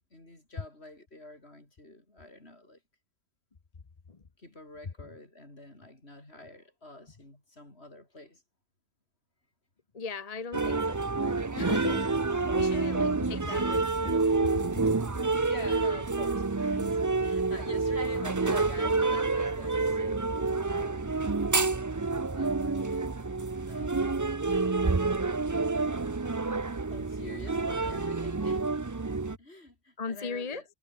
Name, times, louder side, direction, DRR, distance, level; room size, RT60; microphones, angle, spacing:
voice 1, 0.0-2.8 4.4-8.4 11.9-13.0 15.4-21.2 22.3-23.4 23.7-24.4 26.9-28.8 29.4-30.6, left 1 dB, 70° left, 6.4 m, -47 dB
voice 2, 9.9-12.0 12.5-14.6 30.0-30.6, left 4 dB, 35° left, 1.1 m, -37 dB
sound 1, 10.5-29.4, right 3 dB, 20° right, 0.6 m, -28 dB
omnidirectional pair, 1.1 m